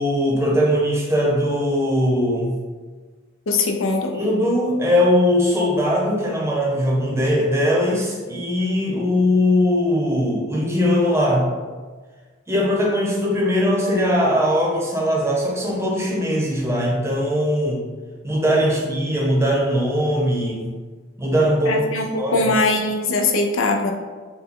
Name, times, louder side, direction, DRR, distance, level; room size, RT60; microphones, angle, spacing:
voice 1, 0.0-2.6 4.1-11.5 12.5-17.8 18.2-20.8 21.2-21.8 22.2-22.5, equal, 15° right, -2 dB, 0.7 m, -20 dB
voice 2, 3.5-4.1 21.6-23.9, left 3 dB, 85° left, 4 dB, 0.6 m, -21 dB
5.9 x 2.1 x 3.8 m, 1.4 s
head